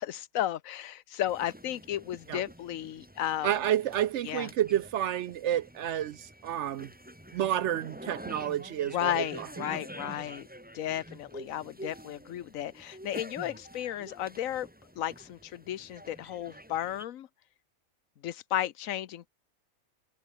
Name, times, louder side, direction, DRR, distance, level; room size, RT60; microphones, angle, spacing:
voice 1, 0.0-3.5 4.2-4.5 8.9-10.5 10.7-14.7 14.9-17.3 18.2-19.3, left 12 dB, 75° left, 1.2 m, -34 dB
sound 1, 1.3-17.0, equal, 5° right, 3.0 m, -48 dB
voice 2, 3.4-6.9 7.3-9.7 10.0-10.1, right 11 dB, 65° right, 0.8 m, -30 dB
omnidirectional pair, 1.4 m